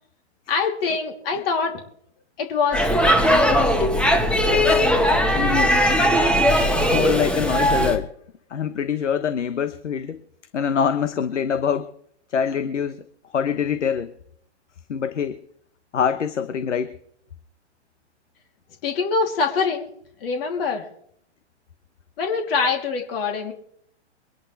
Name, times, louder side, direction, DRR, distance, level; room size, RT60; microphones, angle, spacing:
voice 1, 0.5-1.8 2.4-2.9 3.2-4.5 18.8-19.9 20.2-20.9 22.2-23.5, left 5 dB, 55° left, 2 dB, 3.0 m, -25 dB
Speech / Shout / Subway metro underground, 2.7-8.0, equal, 5° left, 1.3 m, -19 dB
voice 2, 5.3-5.8 6.8-8.1 8.5-10.2 10.5-11.9 12.3-13.0 13.3-14.1 14.9-15.4 15.9-16.9, left 7 dB, 85° left, 11 dB, 1.2 m, -24 dB
24.5 x 11.0 x 3.3 m, 0.66 s
hypercardioid pair, 125°, 35 cm